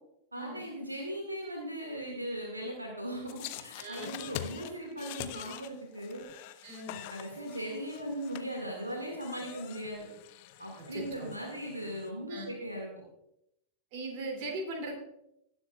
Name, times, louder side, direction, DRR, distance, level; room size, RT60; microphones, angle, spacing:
voice 1, 0.3-6.2 6.9-10.0 10.6-12.9, equal, 85° right, 1 dB, 2.0 m, -38 dB
sound 1, 3.3-12.1, left 12 dB, 50° left, 0.7 m, -45 dB
voice 2, 3.8-4.1 6.6-7.0 10.8-11.3 12.3-12.5 13.9-14.9, right 2 dB, 45° right, 1 dB, 2.8 m, -39 dB
18.5 x 7.9 x 2.4 m, 0.81 s
figure-of-eight pair, 90°, 0 cm